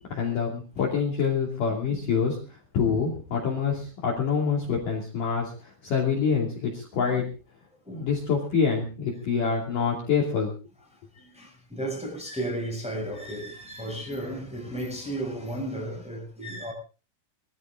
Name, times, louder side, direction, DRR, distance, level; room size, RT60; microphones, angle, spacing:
voice 1, 0.1-7.3 7.9-10.5, left 6 dB, 45° left, 3.8 m, -26 dB
voice 2, 11.1-16.7, right 1 dB, ahead, 5.9 m, -34 dB
22.5 x 14.5 x 3.7 m
omnidirectional pair, 5.8 m